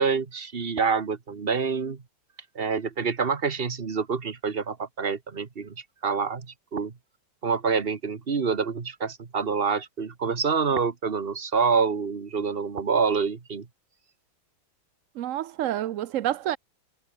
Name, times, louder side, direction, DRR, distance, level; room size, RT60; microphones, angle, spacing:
voice 1, 0.0-2.0 2.6-5.8 6.0-6.9 7.4-13.7, right 5 dB, 30° right, 1.6 m, -27 dB
voice 2, 15.2-16.6, right 12 dB, 75° right, 0.7 m, -28 dB
omnidirectional pair, 2.1 m